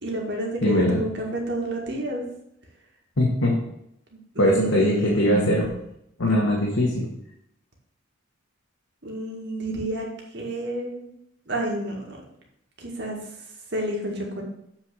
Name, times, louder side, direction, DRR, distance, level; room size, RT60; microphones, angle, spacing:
voice 1, 0.0-2.2 4.3-5.7 9.0-10.1 10.3-11.1 11.5-12.2 12.8-13.2 13.7-14.4, right 1 dB, 55° right, -1 dB, 2.1 m, -29 dB
voice 2, 0.6-1.0 3.2-3.5 4.4-5.7 6.2-7.0, left 1 dB, 80° left, -4 dB, 1.9 m, -21 dB
8.2 x 4.7 x 6.4 m, 0.78 s
head